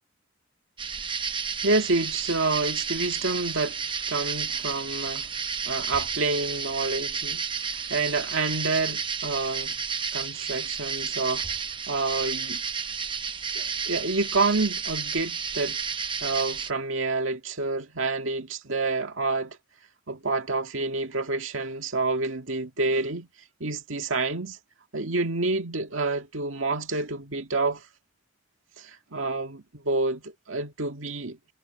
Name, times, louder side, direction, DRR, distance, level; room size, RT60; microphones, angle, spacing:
sound 1, 0.8-16.7, right 6 dB, 25° right, 0.9 m, -32 dB
voice 1, 1.6-3.8 4.1-5.3 5.6-7.5 7.7-9.8 10.1-11.5 11.9-12.6 13.5-15.8 16.2-19.6 20.1-23.3 23.6-24.6 24.9-27.8 28.8-31.4, right 3 dB, 85° right, 2.0 m, -28 dB
head